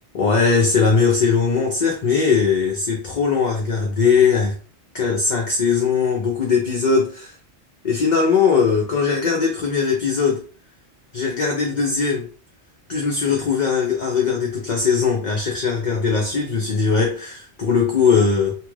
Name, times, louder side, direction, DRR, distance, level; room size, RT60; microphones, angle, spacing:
voice 1, 0.1-4.5 4.9-7.3 7.8-10.4 11.1-12.3 12.9-18.5, left 5 dB, 50° left, -1 dB, 0.7 m, -19 dB
2.9 x 2.4 x 3.1 m, 0.40 s
omnidirectional pair, 1.1 m